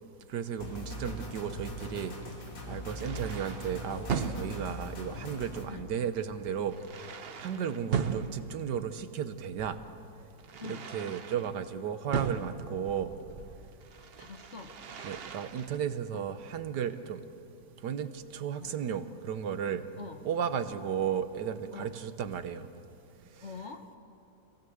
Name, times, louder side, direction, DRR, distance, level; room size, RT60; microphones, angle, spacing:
voice 1, 0.3-2.1 2.7-6.8 7.4-9.8 10.6-13.1 15.0-17.2 17.8-19.9 20.2-22.7, right 8 dB, 70° right, 11 dB, 1.5 m, -34 dB
sound 1, 0.6-5.7, equal, 85° left, 3.2 m, -41 dB
sound 2, 0.8-11.5 12.1-15.8, right 6 dB, 45° right, 0.8 m, -39 dB
voice 2, 13.9-14.8 16.1-16.2 18.6-18.7 20.0-20.2 21.7-21.9 23.4-24.0, left 5 dB, 45° left, 6 dB, 1.3 m, -45 dB
26.5 x 17.5 x 7.9 m, 2.8 s
omnidirectional pair, 1.9 m